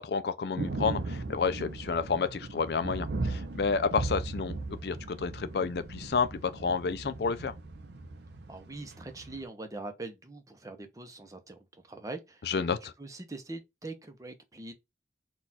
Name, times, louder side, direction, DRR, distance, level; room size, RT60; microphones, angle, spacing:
voice 1, 0.0-7.5 12.5-12.9, left 5 dB, 60° left, 0.4 m, -30 dB
sound 1, 0.6-9.4, right 3 dB, 70° right, 0.6 m, -37 dB
voice 2, 8.5-14.7, right 2 dB, 20° right, 0.6 m, -43 dB
4.2 x 2.4 x 4.0 m
head